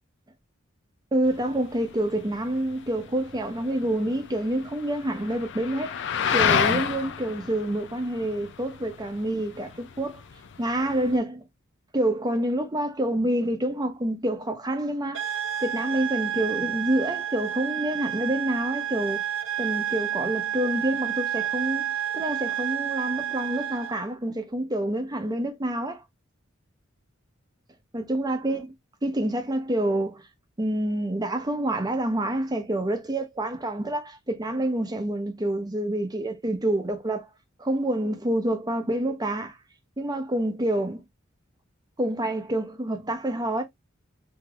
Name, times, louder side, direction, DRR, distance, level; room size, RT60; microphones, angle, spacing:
voice 1, 1.1-6.0 6.3-10.2 10.6-11.4 11.9-15.3 15.6-19.2 19.6-21.8 22.1-26.0 27.9-28.7 29.0-30.2 30.6-37.3 37.6-39.6 40.0-41.0 42.0-43.6, right 1 dB, 20° right, 0.7 m, -27 dB
sound 1, 1.3-11.2, left 7 dB, 60° left, 0.4 m, -30 dB
sound 2, 15.1-24.1, right 10 dB, 65° right, 0.6 m, -30 dB
3.3 x 2.8 x 2.3 m
head